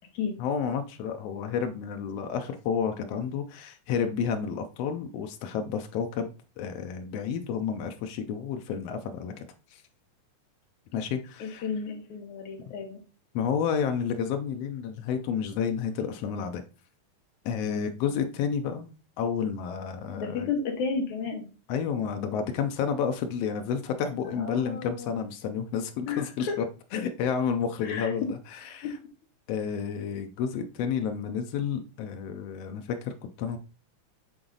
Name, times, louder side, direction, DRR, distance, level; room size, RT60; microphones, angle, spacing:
voice 1, 0.4-9.4 9.7-9.8 10.9-11.7 13.3-16.6 17.4-20.5 21.7-26.6 26.9-29.0 29.5-33.6, left 7 dB, 85° left, 1.4 m, -30 dB
voice 2, 11.4-13.0 17.7-17.9 20.2-21.5 24.4-25.1 26.1-26.6 27.8-28.1 28.8-28.9, left 5 dB, 70° left, 2.5 m, -33 dB
7.5 x 3.9 x 3.8 m
omnidirectional pair, 3.6 m